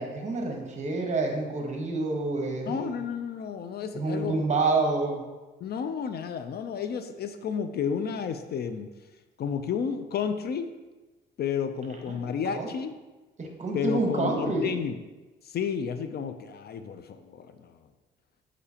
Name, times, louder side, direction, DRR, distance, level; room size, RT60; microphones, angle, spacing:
voice 1, 0.0-3.0 3.9-5.2 12.1-12.2 12.4-12.7 13.4-14.7, right 3 dB, 35° right, 2 dB, 1.2 m, -28 dB
voice 2, 2.7-4.4 5.6-8.9 9.4-10.7 11.4-13.0 13.7-15.0 15.4-17.8, left 7 dB, 55° left, 9 dB, 0.4 m, -31 dB
6.7 x 4.9 x 2.8 m, 1.2 s
cardioid pair, 90°, 20 cm